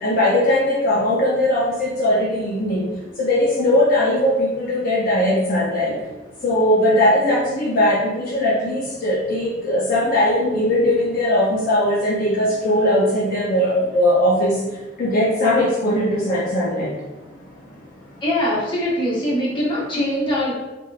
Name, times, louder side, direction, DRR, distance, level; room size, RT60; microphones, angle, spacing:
voice 1, 0.0-2.8 3.2-5.9 6.4-14.6 15.0-16.9, left 1 dB, 50° left, -6 dB, 0.5 m, -19 dB
voice 2, 18.2-20.5, equal, 25° left, -6 dB, 0.9 m, -22 dB
3.5 x 2.5 x 2.4 m, 1.1 s
head